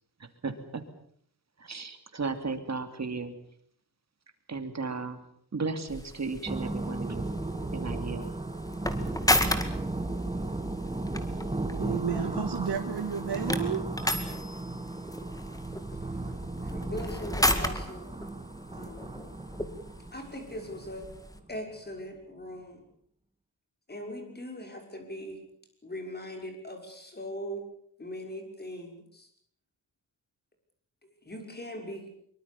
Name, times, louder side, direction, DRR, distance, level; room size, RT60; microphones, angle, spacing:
voice 1, 0.2-0.8 1.6-3.3 4.5-5.2 5.5-7.3 7.7-8.3, right 4 dB, 45° right, 2.7 m, -35 dB
sound 1, 5.9-21.4, left 1 dB, 10° left, 2.2 m, -34 dB
sound 2, 6.5-21.8, right 2 dB, 15° right, 1.6 m, -35 dB
voice 2, 11.8-13.8, right 7 dB, 90° right, 1.9 m, -32 dB
voice 3, 16.6-18.1 18.7-19.1 20.1-21.1 21.5-22.8 23.9-25.4 25.8-27.6 28.0-29.3 31.2-32.1, equal, 25° left, 6.3 m, -40 dB
24.5 x 23.5 x 7.2 m
wide cardioid pair, 160°, 39 cm